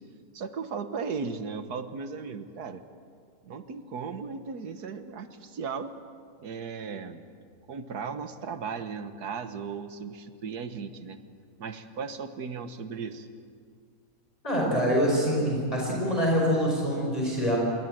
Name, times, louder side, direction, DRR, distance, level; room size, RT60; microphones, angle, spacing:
voice 1, 0.3-2.8 3.4-6.0 6.4-7.2 7.7-11.2 11.6-13.3, right 5 dB, 80° right, 9 dB, 1.8 m, -36 dB
voice 2, 14.4-17.6, equal, 25° left, -3 dB, 5.2 m, -25 dB
26.0 x 23.0 x 7.7 m, 2.2 s
omnidirectional pair, 1.7 m